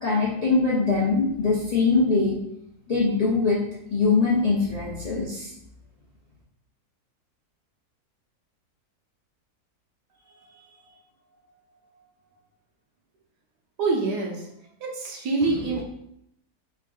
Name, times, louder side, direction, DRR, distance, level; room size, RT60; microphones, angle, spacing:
voice 1, 0.0-2.4 2.9-3.6 3.9-5.5, left 4 dB, 60° left, -6 dB, 0.4 m, -22 dB
voice 2, 10.2-11.0 13.8-14.5 14.8-15.8, right 3 dB, 90° right, -1 dB, 1.4 m, -27 dB
3.7 x 3.6 x 2.4 m, 0.75 s
omnidirectional pair, 1.7 m